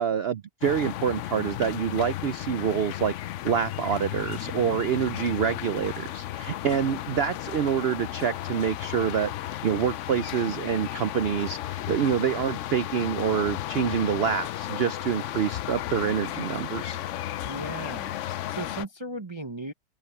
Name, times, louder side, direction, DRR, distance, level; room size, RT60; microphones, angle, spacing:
voice 1, 0.0-3.1 3.4-9.3 9.6-17.0, right 8 dB, 70° right, 0.5 m, -26 dB
sound 1, 0.6-18.8, left 13 dB, 70° left, 0.7 m, -34 dB
voice 2, 17.4-18.2 18.5-19.7, right 2 dB, 25° right, 0.6 m, -36 dB
open air
omnidirectional pair, 1.7 m